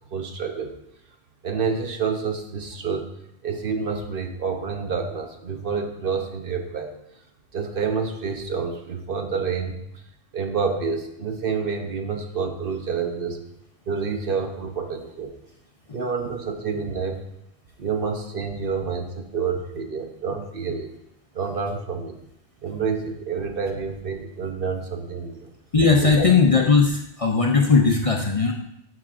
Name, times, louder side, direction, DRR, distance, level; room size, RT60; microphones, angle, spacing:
voice 1, 0.1-0.8 1.4-3.1 3.4-6.9 7.5-9.8 10.3-13.4 13.9-15.3 15.9-17.2 17.8-20.9 21.3-22.2 22.6-25.5 26.0-26.3, right 5 dB, 60° right, 4 dB, 1.0 m, -28 dB
voice 2, 25.7-28.5, left 4 dB, 40° left, 1 dB, 0.6 m, -18 dB
12.5 x 6.0 x 2.5 m, 0.79 s
omnidirectional pair, 1.1 m